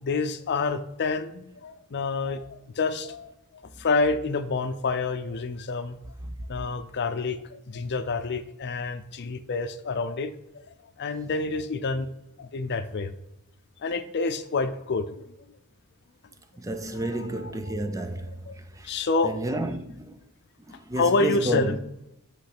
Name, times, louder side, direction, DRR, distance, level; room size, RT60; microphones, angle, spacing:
voice 1, 0.0-3.3 3.8-6.0 6.5-10.3 11.0-12.1 12.4-13.1 13.8-15.3 16.9-17.7 18.1-18.2 18.5-18.6 18.8-19.3 20.7-21.8, left 3 dB, 50° left, 0.5 m, -28 dB
voice 2, 16.6-19.0 19.2-20.2 20.7-21.8, right 1 dB, 15° right, 0.4 m, -31 dB
8.5 x 3.2 x 5.9 m
head